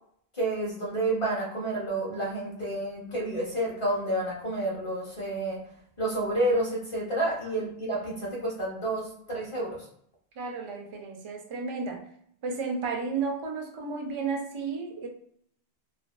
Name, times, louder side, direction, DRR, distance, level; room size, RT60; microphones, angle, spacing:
voice 1, 0.3-5.6 6.0-9.9, right 1 dB, 35° left, -4 dB, 0.6 m, -30 dB
voice 2, 10.4-12.0 12.4-15.1, right 4 dB, 50° right, 2 dB, 0.3 m, -33 dB
2.5 x 2.2 x 2.2 m, 0.66 s
omnidirectional pair, 1.0 m